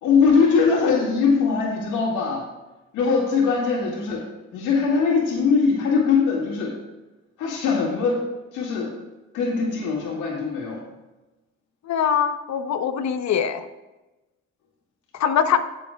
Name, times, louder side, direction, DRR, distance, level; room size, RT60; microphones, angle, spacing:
voice 1, 0.0-2.4 2.9-4.2 4.5-6.7 7.4-8.2 8.5-8.9 9.3-10.8, left 5 dB, 90° left, -2 dB, 2.0 m, -21 dB
voice 2, 11.8-13.6 15.1-15.6, left 8 dB, 65° left, 9 dB, 0.9 m, -22 dB
16.5 x 6.8 x 2.3 m, 1.1 s
cardioid pair, 90°, 30 cm